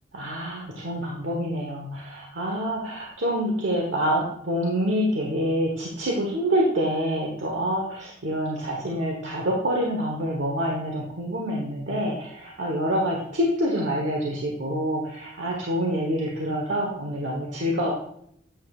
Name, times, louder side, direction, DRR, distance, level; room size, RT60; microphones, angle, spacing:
voice 1, 0.1-17.9, equal, 85° right, -1 dB, 1.2 m, -26 dB
9.2 x 7.4 x 2.4 m, 0.71 s
head